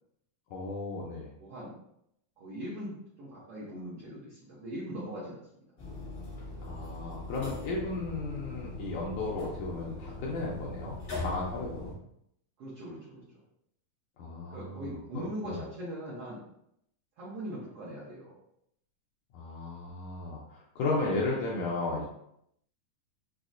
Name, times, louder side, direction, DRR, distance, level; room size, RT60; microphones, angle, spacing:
voice 1, 0.5-1.3 6.6-11.9 14.2-15.6 19.3-22.0, left 3 dB, 80° left, -3 dB, 1.8 m, -34 dB
voice 2, 1.4-1.7 2.4-5.4 12.6-13.2 14.5-16.4 17.2-18.3, equal, 80° right, -7 dB, 1.3 m, -40 dB
sound 1, 5.8-11.9, left 2 dB, 60° left, 0.9 m, -40 dB
5.7 x 2.0 x 2.4 m, 0.75 s
omnidirectional pair, 3.8 m